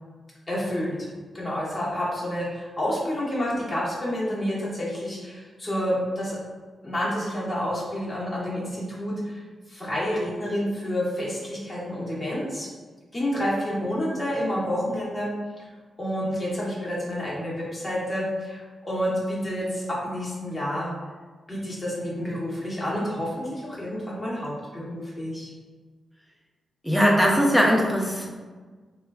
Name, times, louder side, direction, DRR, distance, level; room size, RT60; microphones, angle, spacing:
voice 1, 0.5-1.0 1.3-6.4 6.8-9.4 9.7-12.7 13.1-15.6 16.0-20.9 21.5-25.5, equal, 25° left, -6 dB, 0.9 m, -29 dB
voice 2, 26.8-28.3, equal, 5° left, -1 dB, 0.5 m, -20 dB
3.1 x 2.2 x 2.3 m, 1.4 s
cardioid pair, 65°, 0 cm